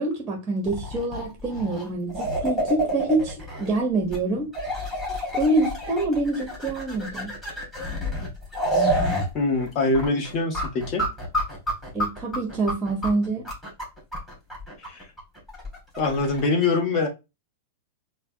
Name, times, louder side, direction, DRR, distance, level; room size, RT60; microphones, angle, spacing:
voice 1, 0.0-4.5 5.3-7.3 11.9-13.5, right 2 dB, 20° right, 0.8 m, -26 dB
sound 1, 0.7-3.8 4.1-4.2 4.5-9.3 9.6-9.7 9.9-16.5, equal, 5° left, 2.0 m, -28 dB
voice 2, 9.3-11.0 14.8-15.1 16.0-17.1, left 3 dB, 35° left, 0.9 m, -24 dB
4.4 x 2.1 x 2.6 m
figure-of-eight pair, 95°, 0 cm